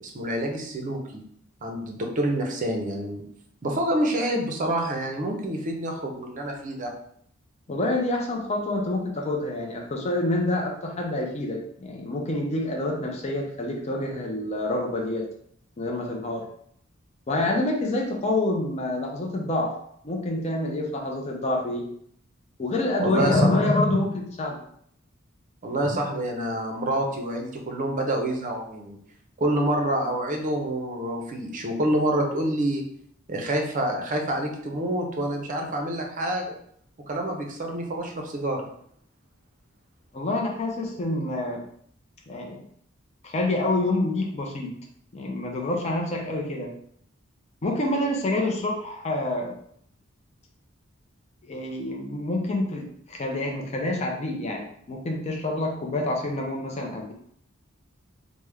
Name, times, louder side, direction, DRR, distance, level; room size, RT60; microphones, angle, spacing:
voice 1, 0.0-1.2 1.6-3.2 3.6-6.9 23.0-23.5 25.6-29.0 29.4-32.8 33.3-36.5 37.1-38.6, right 1 dB, 40° right, 2 dB, 0.6 m, -27 dB
voice 2, 7.7-15.3 15.8-16.5 17.3-19.7 20.0-21.9 22.6-24.6 25.8-26.0 40.1-41.6 42.3-42.6 43.2-44.7 45.1-46.7 47.6-49.5 51.4-57.1, left 2 dB, 30° left, 1 dB, 0.5 m, -27 dB
3.3 x 2.1 x 3.3 m, 0.66 s
head